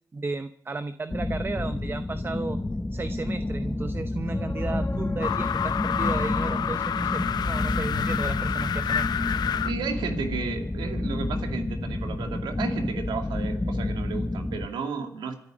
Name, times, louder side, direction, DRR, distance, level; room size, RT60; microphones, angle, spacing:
voice 1, 0.1-2.6 2.9-9.1, right 3 dB, 30° right, 11 dB, 0.8 m, -34 dB
sound 1, 1.1-14.7, left 2 dB, 15° left, 0.8 m, -30 dB
sound 2, 4.3-8.1 11.7-11.8, left 3 dB, 30° left, 1.4 m, -42 dB
sound 3, 5.2-9.7, left 8 dB, 65° left, 0.5 m, -28 dB
voice 2, 9.6-15.4, right 6 dB, 85° right, 5 dB, 2.2 m, -33 dB
27.0 x 9.7 x 5.1 m, 0.65 s
cardioid pair, 65°, 8 cm